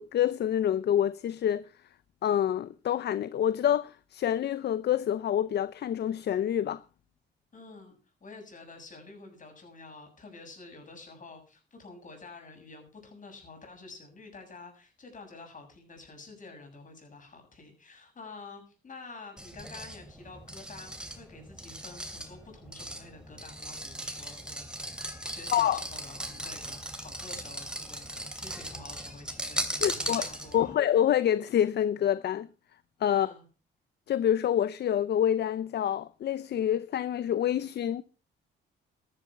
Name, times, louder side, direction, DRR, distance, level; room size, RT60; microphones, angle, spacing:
voice 1, 0.0-1.7 2.2-6.8 25.5-25.8 29.8-30.2 30.5-32.5 33.0-33.3 34.1-38.0, left 10 dB, 55° left, 0.7 m, -27 dB
voice 2, 7.5-30.8 33.1-33.5, left 3 dB, 40° left, 7.4 m, -49 dB
sound 1, 19.4-30.7, right 1 dB, 5° right, 2.9 m, -38 dB
13.5 x 11.5 x 5.7 m
cardioid pair, 90°, 20 cm